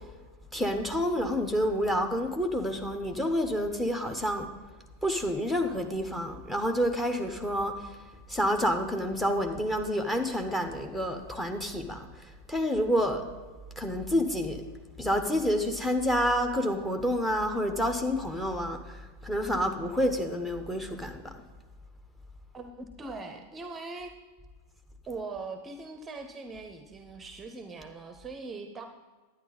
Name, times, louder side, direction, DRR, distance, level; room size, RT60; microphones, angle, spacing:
voice 1, 0.5-4.5 5.0-8.0 8.3-13.2 13.8-14.6 15.0-21.3, equal, 5° left, 6 dB, 1.0 m, -29 dB
voice 2, 22.5-24.1 25.1-28.9, right 3 dB, 20° right, 7 dB, 0.8 m, -41 dB
11.0 x 9.5 x 4.0 m, 1.4 s
figure-of-eight pair, 90°, 0 cm